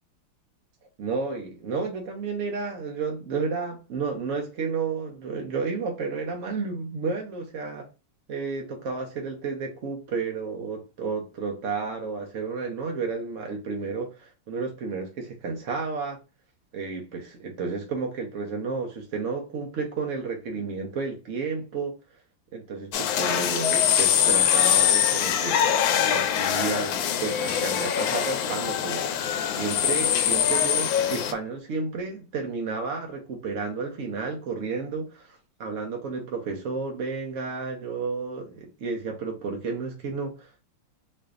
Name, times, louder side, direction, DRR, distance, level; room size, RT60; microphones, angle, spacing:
voice 1, 1.0-7.9 8.3-16.2 16.7-21.9 22.5-25.6 26.0-29.1 29.5-40.6, right 4 dB, 60° right, 0.8 m, -31 dB
sound 1, 22.9-31.3, left 9 dB, 85° left, 1.3 m, -23 dB
4.3 x 2.6 x 2.3 m
omnidirectional pair, 2.0 m